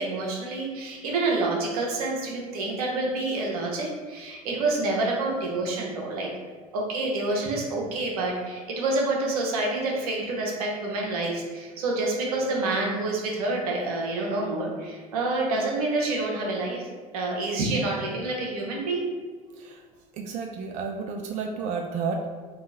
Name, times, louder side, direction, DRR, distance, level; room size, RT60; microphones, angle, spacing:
voice 1, 0.0-6.3 6.7-16.9 17.1-19.1, right 2 dB, 75° right, -1 dB, 0.9 m, -28 dB
voice 2, 20.1-22.3, right 5 dB, 40° right, 3 dB, 0.4 m, -31 dB
2.9 x 2.4 x 3.9 m, 1.5 s
hypercardioid pair, 75°, 19 cm